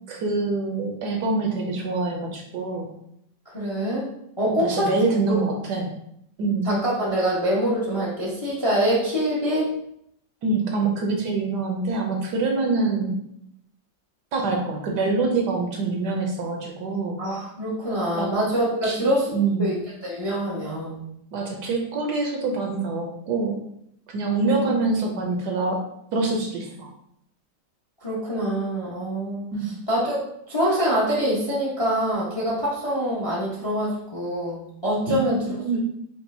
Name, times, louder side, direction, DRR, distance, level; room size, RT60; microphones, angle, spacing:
voice 1, 0.1-2.9 4.4-5.9 6.4-6.7 10.4-13.2 14.3-17.2 18.2-18.4 18.8-19.1 19.3-19.7 21.3-23.6 24.1-26.9 29.5-29.7 35.1-35.8, right 3 dB, 70° right, 1 dB, 1.1 m, -25 dB
voice 2, 3.5-4.1 4.4-4.9 5.3-5.4 6.6-9.7 17.2-19.3 19.6-19.7 20.0-21.0 24.4-24.6 28.0-35.4, right 1 dB, 25° left, -6 dB, 0.5 m, -25 dB
5.3 x 2.5 x 2.6 m, 0.74 s
omnidirectional pair, 2.0 m